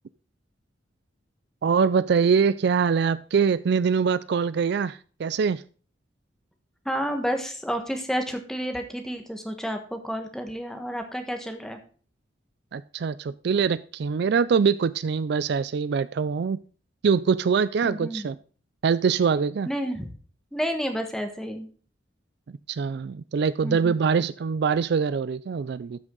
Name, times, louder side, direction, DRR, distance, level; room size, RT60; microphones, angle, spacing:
voice 1, 1.6-5.6 12.7-16.6 17.0-18.4 18.8-19.7 22.7-26.0, right 6 dB, 60° right, 17 dB, 0.4 m, -23 dB
voice 2, 6.8-11.8 17.8-18.2 19.7-20.1 20.5-21.7 23.6-23.9, equal, 5° left, 5 dB, 1.4 m, -30 dB
13.0 x 6.2 x 3.9 m, 0.40 s
head